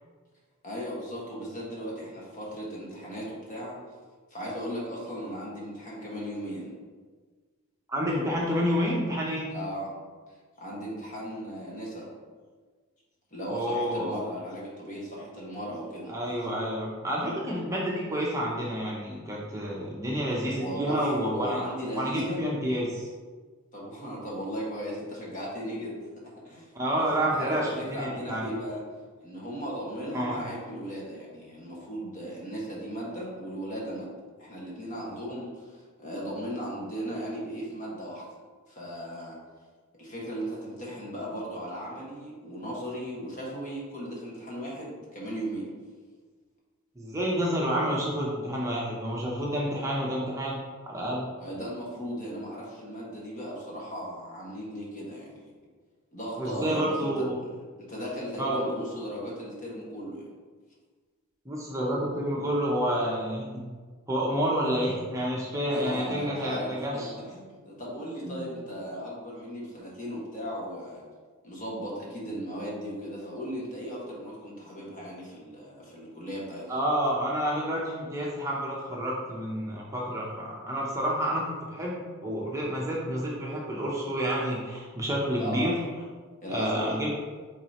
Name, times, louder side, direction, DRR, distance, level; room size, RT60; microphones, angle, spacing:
voice 1, 0.6-3.8 4.3-6.7 9.5-9.9 10.6-12.1 13.3-16.1 20.6-22.4 23.7-26.0 26.4-26.7 26.9-28.8 29.2-34.1 34.4-38.3 38.7-39.4 40.0-45.6 51.4-55.6 56.1-57.5 57.8-60.3 65.7-67.0 67.3-71.0 71.4-76.7 85.4-85.7 86.4-87.0, equal, 35° left, -4 dB, 1.6 m, -36 dB
voice 2, 7.9-9.4 13.5-14.2 16.1-21.6 22.0-23.1 26.7-28.5 30.1-30.4 47.0-51.2 56.4-57.4 58.4-58.8 61.5-63.5 64.1-67.1 68.2-68.5 76.7-85.7 86.5-87.1, equal, 15° right, -4 dB, 0.7 m, -29 dB
8.1 x 3.9 x 2.9 m, 1.5 s
head